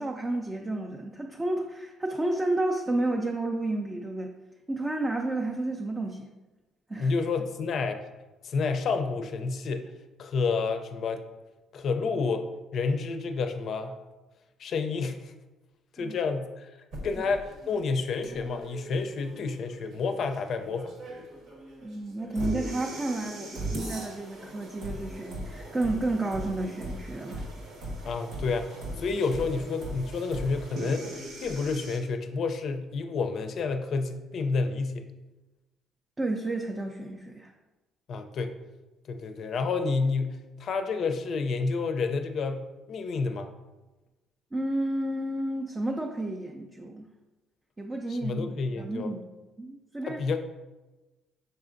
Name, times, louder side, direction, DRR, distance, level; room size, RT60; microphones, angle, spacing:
voice 1, 0.0-4.3 4.7-6.3 6.9-7.1 16.0-16.2 21.8-27.4 36.2-37.5 44.5-47.1 47.8-50.2, right 2 dB, 20° right, 1 dB, 0.4 m, -31 dB
voice 2, 7.0-8.0 8.4-9.9 10.2-11.2 11.7-12.5 12.7-13.9 14.6-15.3 16.0-16.7 17.0-20.9 28.0-28.7 29.0-31.1 31.4-35.1 38.1-38.5 39.1-43.5 48.1-49.1 50.1-50.4, left 4 dB, 60° left, 7 dB, 0.4 m, -29 dB
sound 1, 16.9-32.0, right 1 dB, 75° right, 1.1 m, -39 dB
5.5 x 3.4 x 2.5 m, 1.1 s
cardioid pair, 90°, 0 cm